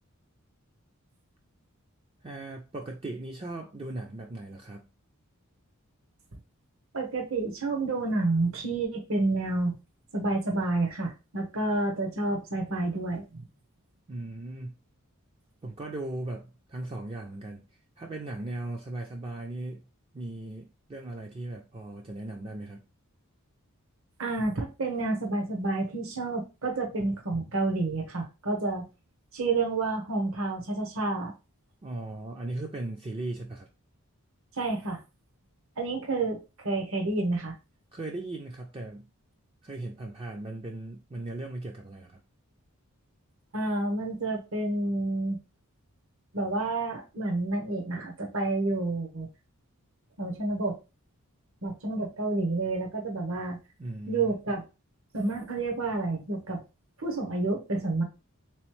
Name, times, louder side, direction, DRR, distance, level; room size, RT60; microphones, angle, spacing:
voice 1, 2.2-4.9 14.1-14.7 15.6-17.6 18.0-19.8 20.1-22.8 31.8-33.7 37.9-39.1 39.6-42.2 53.8-54.3, right 2 dB, 25° right, 1 dB, 0.4 m, -38 dB
voice 2, 6.9-9.7 10.1-13.4 24.2-28.9 29.3-31.3 34.5-35.0 35.8-37.6 43.5-45.4 46.3-49.3 50.2-50.8 51.6-53.6 54.1-54.6 55.1-56.6 57.0-58.0, right 2 dB, 65° right, 2 dB, 1.0 m, -29 dB
3.6 x 3.0 x 3.1 m, 0.29 s
head